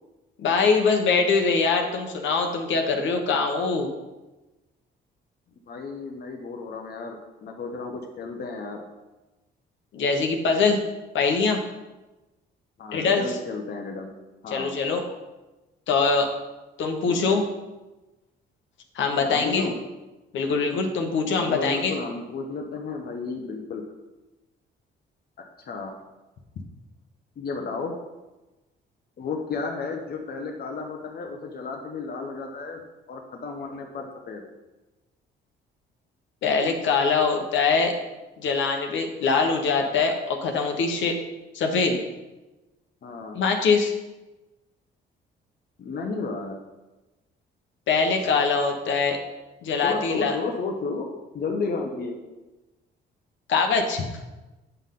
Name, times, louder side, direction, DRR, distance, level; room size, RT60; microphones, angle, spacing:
voice 1, 0.4-3.9 9.9-10.8 11.1-11.6 12.9-13.4 14.5-15.0 15.9-16.3 16.8-17.4 18.9-19.7 20.3-22.0 36.4-37.9 38.4-41.2 41.5-42.0 43.3-43.9 47.9-49.2 49.6-50.3 53.5-54.0, left 4 dB, 70° left, 3 dB, 1.2 m, -23 dB
voice 2, 5.7-8.8 12.8-14.1 14.4-14.8 17.0-17.4 19.2-19.8 21.3-23.8 25.7-25.9 27.4-27.9 29.2-32.8 33.1-34.4 43.0-43.4 45.8-46.6 49.8-52.2, left 4 dB, 50° left, 2 dB, 1.0 m, -32 dB
8.0 x 5.8 x 3.8 m, 1.1 s
cardioid pair, 90°, 20 cm